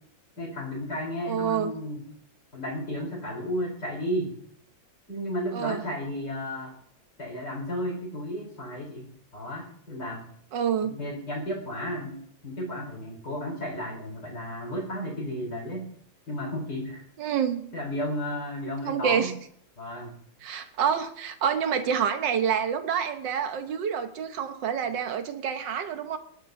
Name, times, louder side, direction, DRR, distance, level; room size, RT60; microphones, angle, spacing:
voice 1, 0.4-2.0 2.5-4.3 5.1-6.8 7.2-10.3 10.8-12.2 12.4-15.9 16.3-17.0 17.7-19.4 19.8-20.2, equal, 60° left, -3 dB, 5.5 m, -33 dB
voice 2, 1.3-1.7 5.5-5.8 10.5-10.9 17.2-17.6 18.8-19.3 20.4-26.2, right 8 dB, 70° right, 8 dB, 1.7 m, -27 dB
25.5 x 11.0 x 2.7 m, 0.65 s
omnidirectional pair, 2.1 m